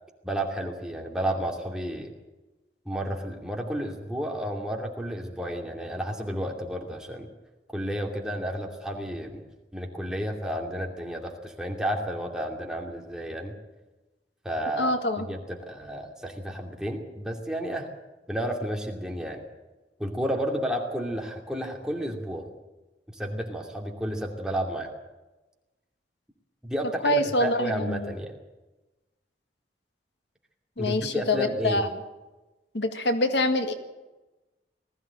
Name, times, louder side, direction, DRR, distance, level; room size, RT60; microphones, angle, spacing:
voice 1, 0.2-2.1 2.8-7.3 7.7-9.4 9.7-13.5 14.4-17.9 18.3-19.4 20.0-22.5 23.1-24.9 26.6-28.3 30.8-31.8, equal, 5° right, 0 dB, 2.6 m, -31 dB
voice 2, 14.8-15.3 27.0-28.1 30.8-31.9 32.7-33.7, left 1 dB, 80° left, 7 dB, 1.9 m, -25 dB
20.0 x 15.0 x 8.8 m, 1.1 s
head